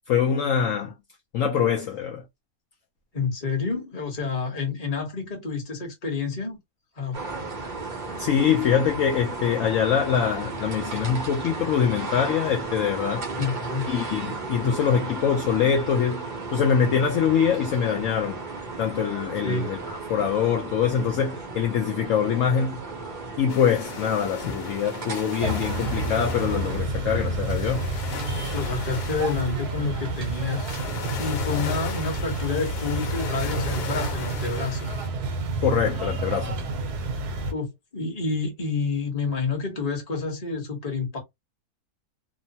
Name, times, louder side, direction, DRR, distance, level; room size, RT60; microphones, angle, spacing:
voice 1, 0.1-0.9 1.3-2.2 8.2-13.3 13.9-18.4 18.8-19.8 20.1-22.8 23.4-27.9 35.6-36.6, left 8 dB, 70° left, 0.8 m, -24 dB
voice 2, 3.1-6.6 7.0-7.2 13.4-13.9 14.6-14.7 19.4-19.7 28.4-30.7 31.2-35.0 37.5-41.2, left 4 dB, 30° left, 1.0 m, -29 dB
sound 1, 7.1-26.8, right 3 dB, 45° right, 0.6 m, -34 dB
sound 2, 23.5-35.1, left 6 dB, 85° left, 1.3 m, -37 dB
sound 3, 25.4-37.5, right 2 dB, 75° right, 1.2 m, -29 dB
3.0 x 2.1 x 2.6 m
omnidirectional pair, 1.7 m